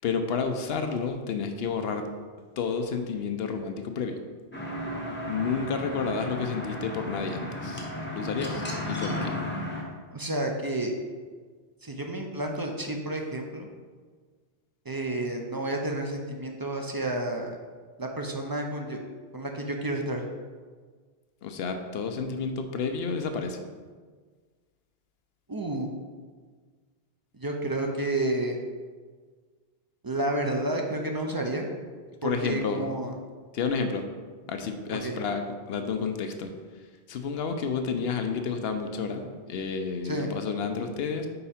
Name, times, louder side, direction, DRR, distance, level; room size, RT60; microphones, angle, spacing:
voice 1, 0.0-2.0 2.6-4.2 5.3-9.3 21.4-23.6 32.2-32.9 33.5-34.0 34.5-35.4 35.7-36.5 37.1-41.3, left 5 dB, 70° left, 6 dB, 0.8 m, -30 dB
sound 1, 4.5-9.8, left 1 dB, 10° left, 0.8 m, -34 dB
voice 2, 10.1-10.9 11.8-13.7 14.9-17.6 18.0-19.0 19.3-20.2 25.5-25.9 27.3-28.6 30.0-31.7 32.2-33.1 34.9-35.2 40.0-40.3, right 1 dB, 30° right, 2 dB, 0.4 m, -30 dB
5.4 x 4.7 x 4.2 m, 1.5 s
omnidirectional pair, 1.1 m